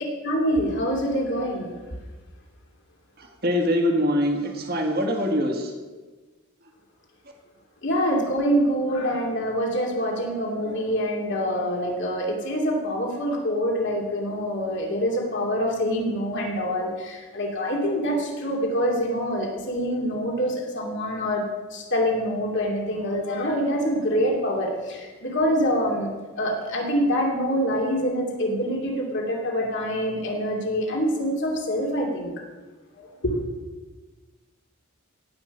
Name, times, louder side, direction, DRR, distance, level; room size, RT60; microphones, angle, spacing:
voice 1, 0.2-1.7 7.8-21.4 21.7-32.3 33.2-33.3, equal, 50° left, 0 dB, 2.7 m, -25 dB
voice 2, 3.2-5.7, equal, 45° right, 3 dB, 1.8 m, -24 dB
17.5 x 6.0 x 7.2 m, 1.3 s
head